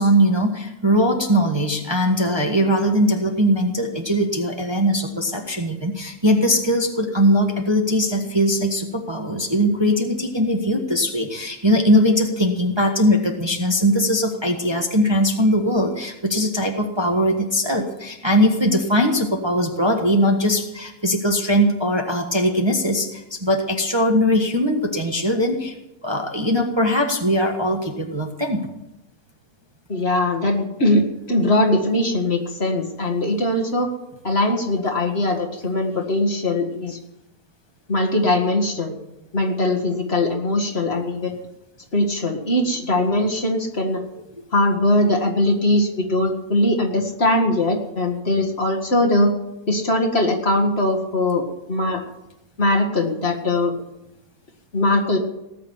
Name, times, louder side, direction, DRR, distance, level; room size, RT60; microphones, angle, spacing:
voice 1, 0.0-25.7 26.0-28.6, equal, 15° right, 2 dB, 1.4 m, -20 dB
voice 2, 29.9-33.9 34.2-37.0 37.9-38.9 39.3-41.4 41.9-44.0 44.5-49.3 49.7-52.0 52.6-53.7 54.7-55.2, left 1 dB, 40° left, 1 dB, 2.2 m, -21 dB
19.0 x 6.8 x 9.6 m, 0.92 s
omnidirectional pair, 1.7 m